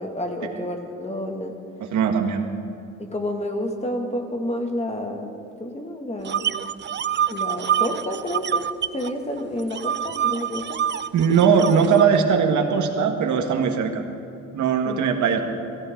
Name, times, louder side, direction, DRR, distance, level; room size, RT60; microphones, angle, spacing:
voice 1, 0.0-1.5 3.0-5.3 5.6-6.5 7.3-10.7 14.8-15.0, left 1 dB, 20° left, 3 dB, 2.3 m, -29 dB
voice 2, 1.8-2.5 11.1-14.0 14.5-15.4, right 6 dB, 75° right, 4 dB, 1.7 m, -20 dB
sound 1, 6.3-9.1 9.4-12.0, right 9 dB, 35° right, 0.5 m, -26 dB
24.5 x 15.0 x 3.9 m, 2.6 s
cardioid pair, 90°, 30 cm